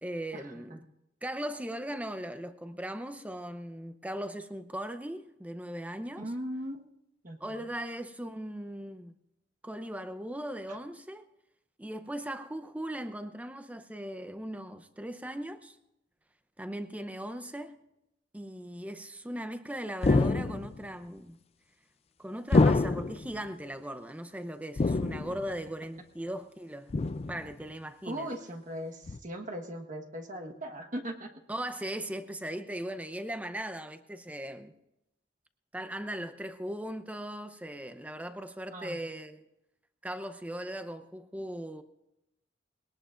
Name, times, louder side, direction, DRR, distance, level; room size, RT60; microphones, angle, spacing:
voice 1, 0.0-0.8 1.2-6.3 7.4-9.1 9.6-11.3 11.8-15.8 16.6-17.8 18.3-21.4 22.2-26.9 27.3-28.3 31.5-34.7 35.7-39.4 40.0-41.8, right 1 dB, 10° right, 0.7 m, -38 dB
voice 2, 6.2-6.9 7.2-7.7 28.0-31.3 38.7-39.0, equal, 45° right, 1.3 m, -39 dB
sound 1, 20.0-20.8 22.5-23.3 24.8-25.5 26.9-27.5 29.1-29.2, left 3 dB, 35° left, 0.4 m, -26 dB
21.0 x 18.0 x 2.5 m
head